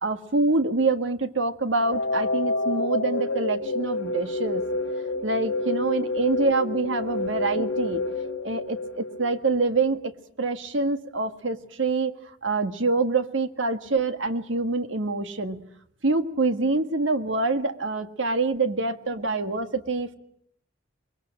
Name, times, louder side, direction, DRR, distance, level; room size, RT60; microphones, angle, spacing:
voice 1, 0.0-4.6 5.2-8.0 8.4-10.1 10.4-12.1 12.4-15.6 16.0-20.1, right 3 dB, 75° right, 9 dB, 1.7 m, -25 dB
sound 1, 1.8-9.7, left 2 dB, 80° left, 1.5 m, -29 dB
24.5 x 22.0 x 9.0 m, 0.68 s
head